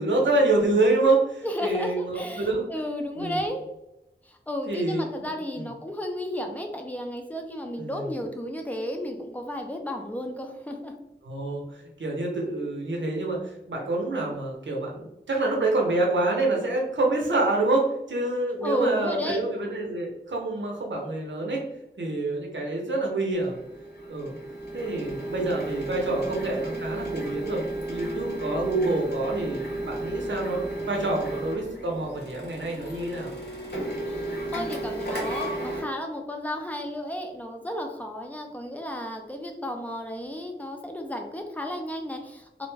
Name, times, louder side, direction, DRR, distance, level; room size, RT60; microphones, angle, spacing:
voice 1, 0.0-2.6 3.2-3.4 4.7-5.3 5.6-5.7 7.8-8.1 11.2-13.4 13.7-21.6 22.0-23.6 24.1-24.3 24.7-33.3, right 2 dB, 85° right, -1 dB, 0.7 m, -27 dB
voice 2, 1.4-3.6 4.3-10.9 18.6-19.4 34.1-42.7, equal, 10° left, 3 dB, 0.5 m, -33 dB
Printer, 23.4-35.8, right 1 dB, 65° left, 0.9 m, -33 dB
2.5 x 2.1 x 3.1 m, 0.89 s
wide cardioid pair, 65°, 19 cm